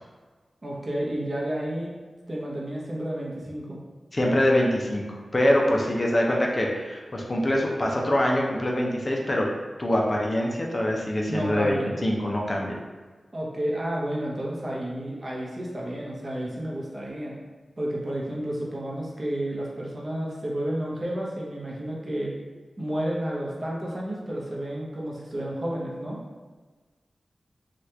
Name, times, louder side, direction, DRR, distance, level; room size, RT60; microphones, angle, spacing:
voice 1, 0.6-1.9 2.3-3.8 11.3-12.0 13.3-17.4 17.8-22.3 22.8-26.2, right 1 dB, 40° right, -4 dB, 0.8 m, -31 dB
voice 2, 4.1-9.5 9.8-12.8, left 1 dB, 40° left, -1 dB, 0.5 m, -24 dB
2.8 x 2.3 x 3.3 m, 1.4 s
wide cardioid pair, 60°, 0 cm